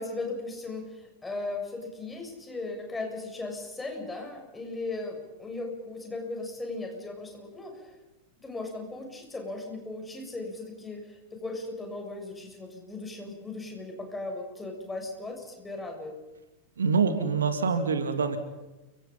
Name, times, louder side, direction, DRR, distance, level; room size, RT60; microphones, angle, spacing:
voice 1, 0.0-7.9 8.4-16.1, left 2 dB, 10° left, 2 dB, 7.2 m, -37 dB
voice 2, 16.8-18.4, right 5 dB, 70° right, 8 dB, 2.2 m, -25 dB
29.5 x 25.0 x 5.6 m, 1.1 s
figure-of-eight pair, 90°, 0 cm